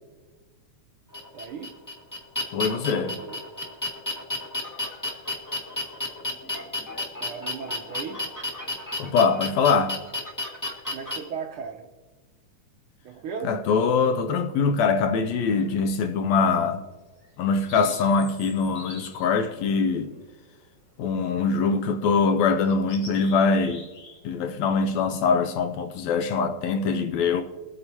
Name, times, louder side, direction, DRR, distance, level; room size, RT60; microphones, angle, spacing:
sound 1, 1.1-11.2, left 2 dB, 10° left, 0.8 m, -32 dB
voice 1, 1.3-1.7 3.1-3.4 7.2-8.3 10.9-11.9 13.0-13.5 17.8-18.0 21.2-21.4, right 6 dB, 80° right, 1.2 m, -37 dB
voice 2, 2.5-3.2 9.0-10.0 13.4-16.8 17.4-20.1 21.0-23.9 24.2-27.4, left 5 dB, 80° left, 1.8 m, -23 dB
sound 2, 13.8-14.3 15.4-16.0 16.4-16.6 17.2-20.6 21.3-21.8 22.1-22.2 22.6-24.2 24.5-24.7, left 2 dB, 60° left, 6.2 m, -47 dB
23.0 x 8.9 x 2.8 m
omnidirectional pair, 3.5 m